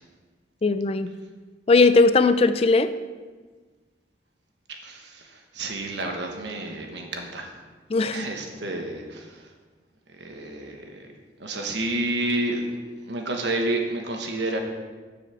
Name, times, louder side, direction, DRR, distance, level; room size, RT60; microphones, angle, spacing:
voice 1, 0.6-1.1 1.7-2.9 7.9-8.3, left 3 dB, 30° left, 12 dB, 0.3 m, -18 dB
voice 2, 4.7-7.5 8.1-9.5 10.1-11.1 11.4-12.7 13.0-14.6, right 2 dB, 65° right, 2 dB, 1.3 m, -30 dB
7.2 x 5.7 x 6.9 m, 1.4 s
head